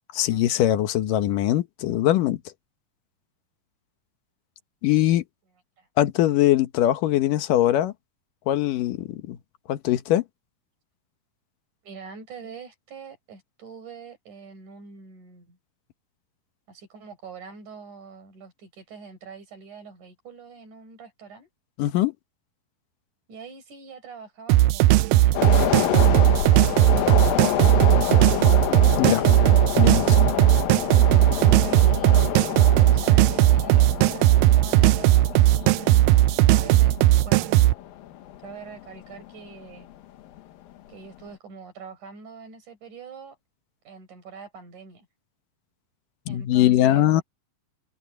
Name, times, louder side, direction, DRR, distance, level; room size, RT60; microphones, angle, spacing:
voice 1, 0.1-2.4 4.8-5.2 6.0-7.9 8.5-9.4 9.7-10.2 21.8-22.1 29.0-29.2 29.8-30.2 46.3-47.2, left 13 dB, 75° left, 2.7 m, -21 dB
voice 2, 11.8-15.6 16.7-21.5 23.3-27.9 31.4-37.0 37.2-37.5 38.4-39.9 40.9-43.4 43.8-45.1 46.3-47.2, right 5 dB, 60° right, 7.6 m, -44 dB
sound 1, 24.5-37.7, right 15 dB, 80° right, 2.2 m, -17 dB
sound 2, 25.3-39.9 40.3-40.4, left 12 dB, 90° left, 3.0 m, -28 dB
open air
omnidirectional pair, 4.0 m